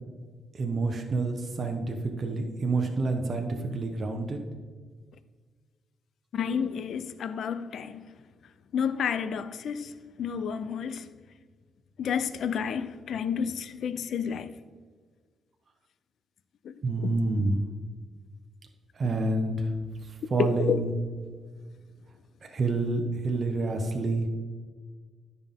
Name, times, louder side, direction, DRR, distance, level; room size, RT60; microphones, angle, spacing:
voice 1, 0.5-4.4 16.8-17.6 19.0-19.7 20.1-20.9 22.5-24.3, right 3 dB, 30° right, 0.8 m, -28 dB
voice 2, 6.3-8.1 8.7-11.1 12.0-14.6 16.6-16.7 20.4-20.8, left 7 dB, 55° left, 0.4 m, -30 dB
12.0 x 5.4 x 3.6 m
cardioid pair, 170°, 0 cm